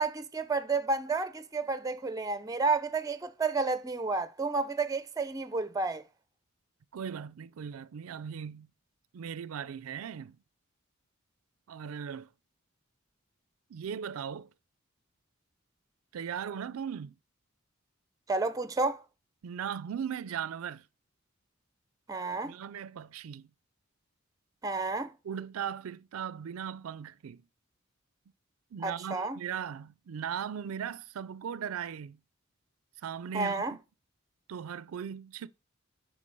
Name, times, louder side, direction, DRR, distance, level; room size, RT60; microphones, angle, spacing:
voice 1, 0.0-6.0 18.3-19.0 22.1-22.5 24.6-25.1 28.8-29.4 33.3-33.8, right 3 dB, 15° right, 0.5 m, -31 dB
voice 2, 6.9-8.7 9.1-10.4 11.7-12.3 13.7-14.5 16.1-17.1 19.4-20.8 22.4-23.5 25.2-27.4 28.7-32.2 33.0-33.6 34.5-35.5, right 8 dB, 85° right, 0.4 m, -38 dB
8.3 x 5.1 x 5.4 m
head